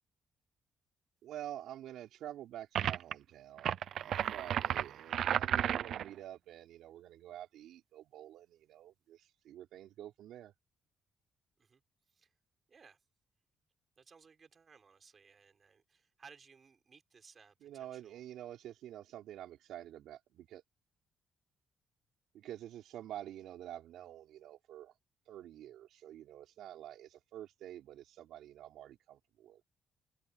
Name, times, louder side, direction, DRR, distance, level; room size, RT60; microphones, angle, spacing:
voice 1, 1.2-10.5 17.6-20.6 22.3-24.9 25.3-29.6, right 12 dB, 90° right, 4.3 m, -48 dB
sound 1, 2.7-3.1 3.6-6.1, right 10 dB, 60° right, 0.7 m, -33 dB
voice 2, 12.7-13.0 14.0-18.2, right 5 dB, 30° right, 5.3 m, -60 dB
cardioid pair, 165°, 0 cm